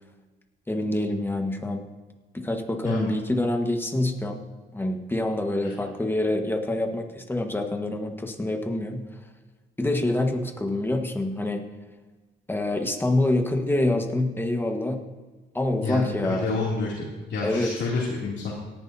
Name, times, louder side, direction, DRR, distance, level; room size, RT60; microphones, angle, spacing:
voice 1, 0.7-1.8 2.3-4.4 4.7-9.1 9.8-11.6 12.5-15.0 15.5-16.5 17.4-17.7, left 1 dB, 10° left, 4 dB, 1.5 m, -26 dB
voice 2, 2.8-3.1 5.6-5.7 15.8-17.0 17.3-18.5, left 3 dB, 65° left, -7 dB, 3.0 m, -29 dB
18.0 x 11.0 x 2.8 m, 1.3 s
cardioid pair, 90°, 20 cm